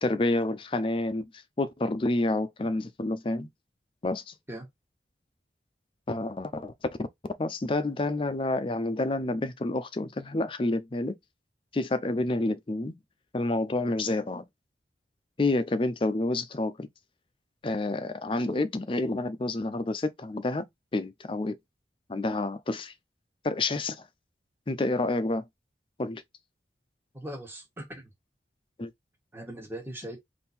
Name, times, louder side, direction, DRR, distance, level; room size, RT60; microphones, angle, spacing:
voice 1, 0.0-1.3 1.6-3.5 4.0-4.3 6.1-6.7 7.4-11.2 11.7-12.9 13.3-14.5 15.4-16.9 17.6-20.7 20.9-21.6 22.1-22.9 23.4-24.0 24.7-25.5 26.0-26.2 28.8-28.9, left 2 dB, 30° left, 0.4 m, -29 dB
voice 2, 27.1-28.1 29.3-30.2, right 1 dB, 15° right, 1.3 m, -40 dB
3.7 x 2.6 x 4.2 m
head